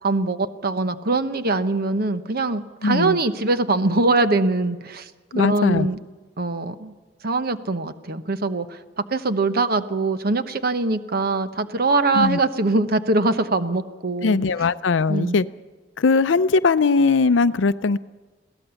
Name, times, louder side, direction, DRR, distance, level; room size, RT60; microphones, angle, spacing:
voice 1, 0.0-6.0 6.4-6.9 7.2-14.4 15.1-15.4, right 3 dB, 55° right, 11 dB, 1.0 m, -23 dB
voice 2, 2.8-3.2 5.3-5.9 12.1-12.4 14.2-15.4 16.0-18.0, left 4 dB, 80° left, 13 dB, 0.5 m, -19 dB
22.0 x 17.0 x 7.0 m, 1.3 s
head